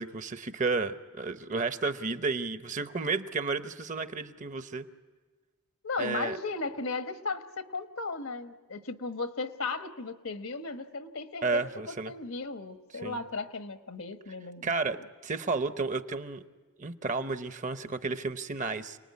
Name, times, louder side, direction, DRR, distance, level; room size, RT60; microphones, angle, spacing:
voice 1, 0.0-4.9 6.0-6.4 11.4-12.1 13.0-13.2 14.6-16.4 16.8-19.0, right 4 dB, 35° right, 10 dB, 0.8 m, -32 dB
voice 2, 5.8-15.0, left 3 dB, 70° left, 8 dB, 1.2 m, -36 dB
29.0 x 20.0 x 9.5 m, 1.4 s
head